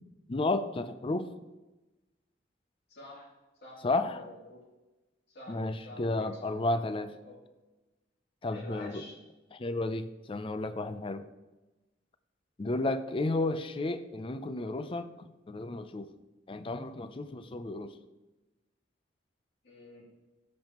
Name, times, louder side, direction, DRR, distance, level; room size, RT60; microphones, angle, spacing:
voice 1, 0.3-1.3 3.8-4.2 5.5-7.1 8.4-9.0 9.6-11.3 12.6-16.1 16.5-17.9, left 2 dB, 30° left, 11 dB, 0.4 m, -32 dB
voice 2, 2.9-3.3 3.6-4.6 5.3-6.5 7.2-7.4 8.5-9.2 19.6-20.0, left 2 dB, 60° left, -6 dB, 2.8 m, -48 dB
13.5 x 5.4 x 3.0 m, 1.1 s
head